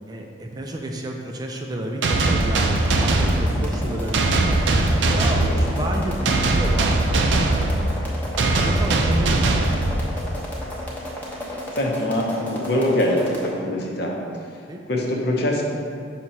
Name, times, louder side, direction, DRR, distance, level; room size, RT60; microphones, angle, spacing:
voice 1, 0.1-4.5 5.1-7.1 7.4-9.7 14.7-14.8, right 1 dB, 20° right, 1 dB, 0.4 m, -31 dB
sound 1, 2.0-10.5, right 2 dB, 80° right, 0.5 m, -21 dB
sound 2, 2.2-13.5, left 1 dB, 10° left, 0.9 m, -34 dB
voice 2, 3.6-3.9 5.1-5.9 11.5-14.2 14.5-14.6 14.9-15.6, left 1 dB, 60° left, -1 dB, 0.8 m, -24 dB
6.0 x 2.9 x 5.4 m, 2.3 s
head